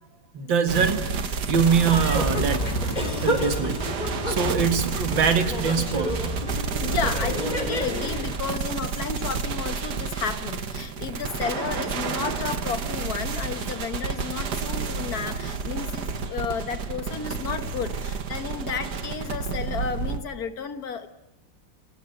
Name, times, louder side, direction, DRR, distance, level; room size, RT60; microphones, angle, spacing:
voice 1, 0.3-1.0 1.5-2.6 3.2-3.8 4.3-6.5, right 6 dB, 90° right, 8 dB, 2.4 m, -23 dB
sound 1, 0.7-20.2, right 5 dB, 60° right, 1.9 m, -30 dB
sound 2, 1.6-10.9, left 2 dB, 90° left, 5.6 m, -47 dB
sound 3, 1.9-8.4, left 1 dB, 25° left, 3.0 m, -30 dB
voice 2, 6.8-21.1, left 6 dB, 55° left, 10 dB, 1.9 m, -32 dB
27.5 x 18.0 x 8.0 m, 1.0 s
omnidirectional pair, 2.0 m